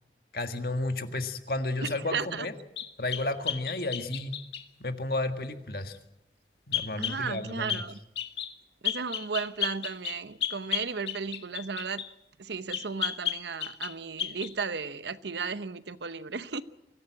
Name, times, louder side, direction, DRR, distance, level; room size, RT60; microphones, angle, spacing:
voice 1, 0.3-2.5 3.0-4.3 4.8-6.0 6.7-7.8, left 2 dB, 55° left, 1.7 m, -32 dB
voice 2, 1.8-2.5 7.0-8.0 8.8-12.0 12.4-16.6, right 5 dB, 75° right, 0.9 m, -34 dB
sound 1, 2.8-4.7 6.7-7.2 7.7-7.9 8.2-8.5 8.8-12.1 12.7-13.9 14.2-14.5, left 11 dB, 75° left, 1.9 m, -33 dB
24.0 x 16.0 x 8.7 m
head